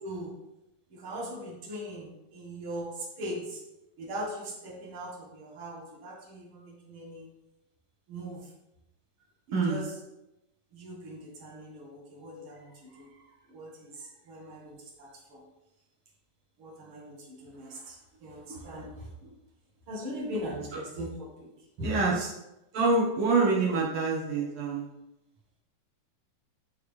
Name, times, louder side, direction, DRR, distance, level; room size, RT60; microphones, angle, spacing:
voice 1, 0.0-0.4 0.9-3.6 4.0-7.3 8.1-8.5 9.5-10.0 10.7-15.4 16.6-19.3 19.9-21.9, equal, 65° right, -2 dB, 1.3 m, -40 dB
voice 2, 9.5-9.8 21.8-22.3 22.7-24.9, right 3 dB, 90° right, -4 dB, 1.2 m, -26 dB
10.0 x 3.5 x 3.1 m, 0.92 s
omnidirectional pair, 4.2 m